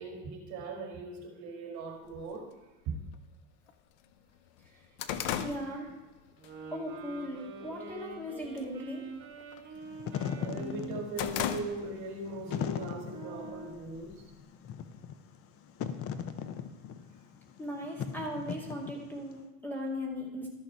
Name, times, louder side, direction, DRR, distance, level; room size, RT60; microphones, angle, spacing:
voice 1, 0.0-2.5 2.9-3.0 10.3-14.2, right 3 dB, 50° right, 2 dB, 2.1 m, -40 dB
sound 1, 2.1-2.2 3.1-3.2 3.7-3.8 4.1-6.5 6.9-7.2 7.7-8.2 8.4-8.8 9.1-10.3 10.7-12.2 12.5-12.6 13.5-14.4, left 9 dB, 70° left, 0.8 m, -37 dB
voice 2, 5.4-5.9 6.7-9.1 17.6-20.5, equal, 5° left, -2 dB, 2.2 m, -38 dB
sound 2, 6.4-13.9, right 3 dB, 35° right, 3.6 m, -46 dB
Wind / Fire, 9.8-19.3, left 8 dB, 35° left, 0.7 m, -39 dB
12.5 x 6.6 x 4.6 m, 1.1 s
supercardioid pair, 125°, 37 cm